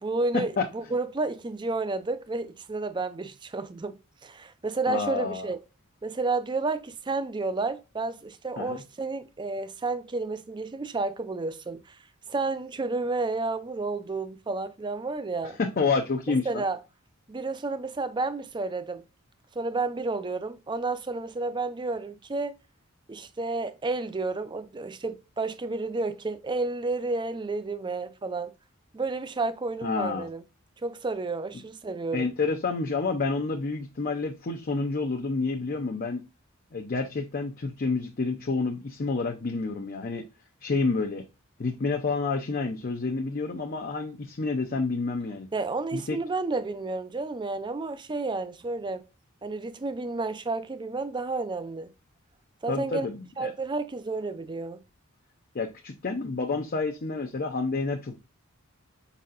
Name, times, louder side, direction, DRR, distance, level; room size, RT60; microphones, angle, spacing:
voice 1, 0.0-5.6 6.0-12.0 12.3-15.6 16.5-16.8 17.3-19.0 19.6-22.6 23.1-28.5 28.9-30.4 30.8-32.3 45.5-49.0 49.4-51.9 52.6-53.1 53.4-54.8, right 3 dB, 20° right, 0.4 m, -31 dB
voice 2, 4.9-5.5 8.6-8.8 15.6-16.6 29.8-30.3 32.1-36.2 36.7-40.2 40.6-41.2 41.6-45.5 45.9-46.2 52.7-53.5 55.5-58.2, left 4 dB, 45° left, 0.5 m, -29 dB
5.1 x 4.1 x 2.5 m
head